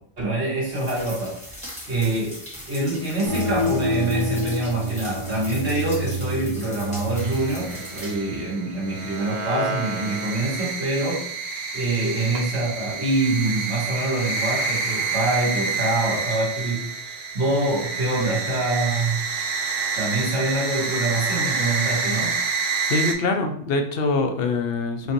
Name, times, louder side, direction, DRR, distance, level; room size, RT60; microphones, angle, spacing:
voice 1, 0.2-1.4 1.9-2.4 2.7-11.3 11.7-19.2 20.0-22.4, right 2 dB, 90° right, -5 dB, 1.9 m, -25 dB
sound 1, 0.7-8.1, equal, 5° left, 1.5 m, -40 dB
sound 2, 3.3-8.7, left 1 dB, 45° right, 1.3 m, -29 dB
sound 3, 7.2-23.1, right 4 dB, 70° right, 0.9 m, -28 dB
voice 2, 22.9-25.1, left 3 dB, 65° left, 5 dB, 0.7 m, -24 dB
5.0 x 2.5 x 2.9 m, 0.64 s
omnidirectional pair, 1.1 m